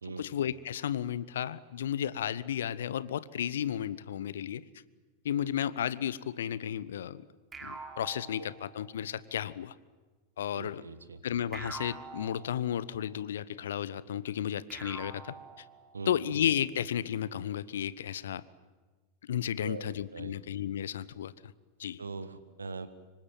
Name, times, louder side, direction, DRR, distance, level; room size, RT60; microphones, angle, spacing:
voice 1, 0.2-4.6 5.2-7.3 7.6-9.7 10.4-10.8 11.2-15.6 16.1-18.4 19.2-21.3 21.8-22.0, left 10 dB, 60° left, 19 dB, 0.9 m, -33 dB
sound 1, 7.5-9.2 11.5-13.1 14.7-16.2, right 4 dB, 15° right, 3.1 m, -46 dB
voice 2, 10.5-11.2 15.9-16.1 19.6-20.4 22.0-22.9, right 4 dB, 75° right, 13 dB, 1.6 m, -41 dB
26.0 x 24.0 x 9.1 m, 1.3 s
figure-of-eight pair, 90°, 0 cm